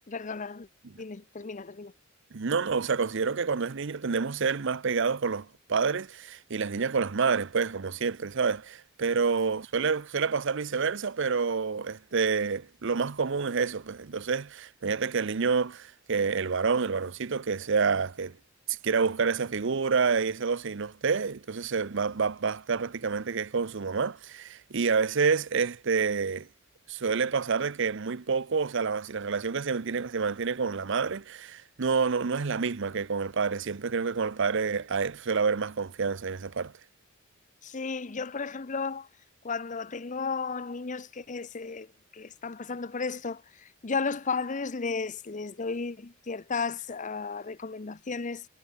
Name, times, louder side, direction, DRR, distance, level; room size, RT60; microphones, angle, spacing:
voice 1, 0.1-0.7 1.0-1.9 37.6-39.1 39.4-41.9 42.1-48.5, left 4 dB, 35° left, 0.7 m, -34 dB
voice 2, 2.3-18.3 18.8-26.5 26.9-36.7, right 5 dB, 60° right, 0.7 m, -28 dB
head